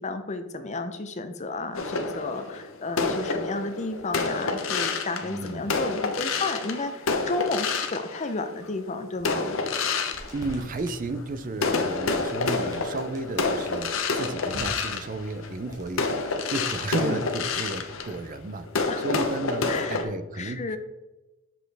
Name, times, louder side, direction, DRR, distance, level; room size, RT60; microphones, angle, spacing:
voice 1, 0.0-9.6 17.0-17.3 18.9-19.1 19.7-20.8, left 3 dB, 35° left, 9 dB, 0.6 m, -32 dB
sound 1, 1.4-1.6 3.4-5.2 6.2-6.3 6.9-8.7 9.2-9.7 10.4-16.5 17.2-19.4, right 1 dB, 80° right, 1.7 m, -51 dB
sound 2, 1.7-8.7 9.2-11.2 11.5-20.0, left 4 dB, 70° left, 0.7 m, -29 dB
voice 2, 5.2-5.7 10.3-20.8, right 2 dB, 40° right, 11 dB, 0.5 m, -33 dB
sound 3, 10.1-18.3, equal, 15° right, 1.6 m, -50 dB
7.1 x 6.1 x 3.4 m, 1.1 s
head